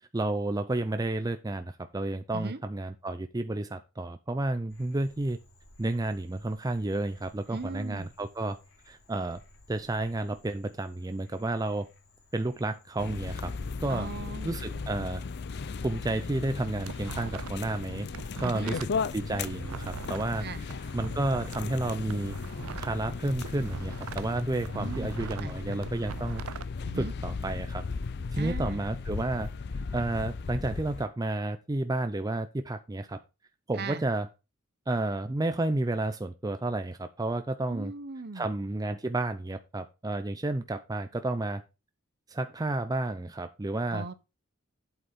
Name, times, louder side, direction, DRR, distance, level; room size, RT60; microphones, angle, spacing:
voice 1, 0.1-5.4 5.8-8.6 8.9-9.4 9.7-11.9 12.3-13.5 13.8-14.1 14.4-15.2 15.8-18.1 18.4-18.9 19.1-20.5 20.9-22.4 22.8-26.4 26.9-27.8 28.3-29.5 29.9-33.2 33.7-34.3 34.9-37.9 38.3-41.6 42.3-44.1, right 2 dB, 20° right, 0.5 m, -31 dB
Frog, 4.7-19.5, left 1 dB, 70° left, 3.2 m, -55 dB
voice 2, 7.5-8.1 13.9-14.6 18.4-18.7 20.4-20.6 24.7-25.8 26.8-27.1 28.4-28.8 33.7-34.0 37.7-38.5 43.9-44.1, right 3 dB, 50° right, 0.9 m, -38 dB
sound 1, 13.0-31.1, left 4 dB, 55° left, 0.5 m, -36 dB
sound 2, 16.5-17.7 18.0-21.6 22.0-24.3 24.6-26.7, right 7 dB, 85° right, 0.4 m, -41 dB
8.1 x 7.9 x 3.7 m
head